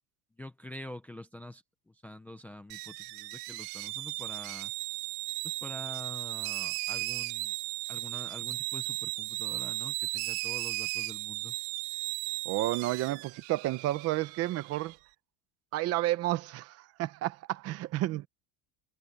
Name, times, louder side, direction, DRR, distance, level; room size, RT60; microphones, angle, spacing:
voice 1, 0.4-4.7 5.4-7.5 7.9-11.5, left 1 dB, 5° left, 0.5 m, -46 dB
sound 1, 2.7-14.9, right 22 dB, 55° right, 0.9 m, -36 dB
voice 2, 12.4-15.0 15.7-18.3, right 16 dB, 30° right, 0.7 m, -31 dB
cardioid pair, 175°, 48 cm